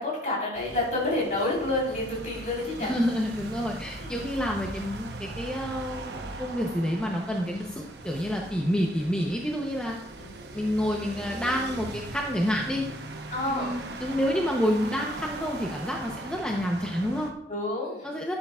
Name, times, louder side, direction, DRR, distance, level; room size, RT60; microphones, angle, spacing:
voice 1, 0.0-3.0 4.0-4.2 10.2-10.3 13.3-13.8 17.5-18.0, left 2 dB, 45° left, -3 dB, 3.9 m, -29 dB
sound 1, 0.5-17.3, right 2 dB, 75° right, 1.0 m, -40 dB
voice 2, 2.8-10.0 10.5-12.8 13.5-17.3 18.0-18.3, equal, 5° left, -1 dB, 0.7 m, -28 dB
11.5 x 9.0 x 2.4 m, 0.74 s
head